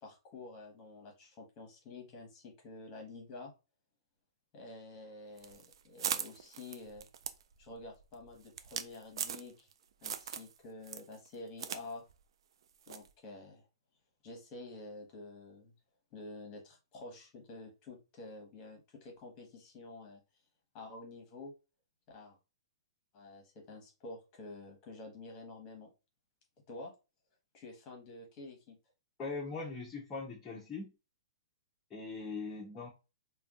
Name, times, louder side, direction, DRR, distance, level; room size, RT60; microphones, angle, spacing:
voice 1, 0.0-3.5 4.5-7.1 7.6-9.7 10.0-12.0 12.9-13.7 14.2-15.7 16.1-20.2 20.7-21.5 22.1-22.4 23.1-25.9 26.7-26.9 27.5-28.8, left 2 dB, 30° left, 2 dB, 1.0 m, -49 dB
sound 1, 5.4-9.7 10.0-10.5 10.8-11.8 12.1-12.2 12.9-13.1, right 8 dB, 65° right, 0.3 m, -39 dB
voice 2, 29.2-30.9 31.9-32.9, left 4 dB, 15° left, -5 dB, 0.7 m, -40 dB
2.5 x 2.2 x 3.5 m, 0.29 s
hypercardioid pair, 140°, 3 cm